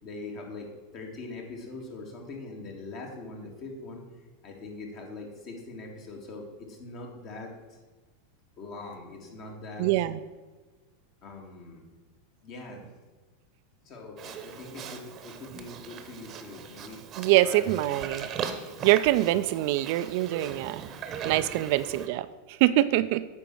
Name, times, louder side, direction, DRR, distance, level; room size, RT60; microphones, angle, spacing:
voice 1, 0.0-4.0 4.4-7.8 8.6-9.9 11.2-11.8 12.4-12.9 13.8-17.0 17.4-18.4, left 3 dB, 45° left, 1 dB, 2.1 m, -42 dB
voice 2, 9.8-10.2 17.2-18.3 18.8-20.8 21.2-23.3, right 15 dB, 60° right, 14 dB, 0.4 m, -24 dB
Livestock farm animals working animals, 14.2-22.1, right 7 dB, 40° right, 0.9 m, -39 dB
8.6 x 4.5 x 6.2 m, 1.3 s
hypercardioid pair, 95°, 0 cm